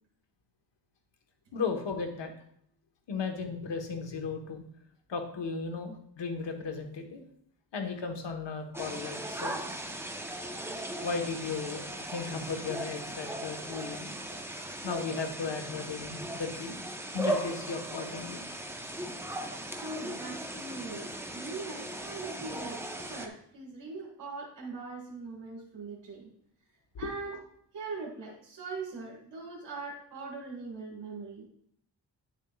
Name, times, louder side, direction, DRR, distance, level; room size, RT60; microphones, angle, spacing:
voice 1, 1.5-2.3 3.1-4.6 5.1-7.2 7.7-9.6 11.0-14.1 14.6-16.8 17.1-18.4, left 4 dB, 85° left, 4 dB, 1.3 m, -35 dB
sound 1, 8.7-23.3, right 1 dB, 5° right, 0.9 m, -38 dB
voice 2, 19.8-26.3 27.0-27.4 27.7-31.5, right 3 dB, 85° right, -3 dB, 1.9 m, -41 dB
9.9 x 7.3 x 2.4 m, 0.67 s
cardioid pair, 80°, 42 cm